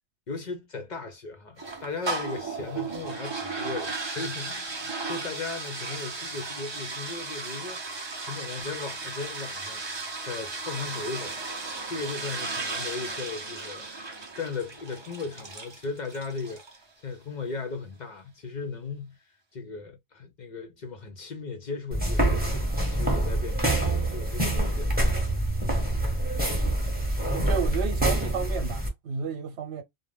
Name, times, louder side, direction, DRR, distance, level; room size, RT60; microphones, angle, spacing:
voice 1, 0.3-7.8 8.2-9.8 10.2-11.4 11.8-19.2 19.5-22.4 22.9-25.0, left 4 dB, 55° left, 0.6 m, -37 dB
sound 1, 1.6-16.8, right 3 dB, 35° right, 0.5 m, -35 dB
sound 2, 21.9-28.9, right 1 dB, 10° right, 0.9 m, -26 dB
voice 2, 27.3-29.8, right 6 dB, 75° right, 1.0 m, -32 dB
2.4 x 2.1 x 3.2 m
omnidirectional pair, 1.1 m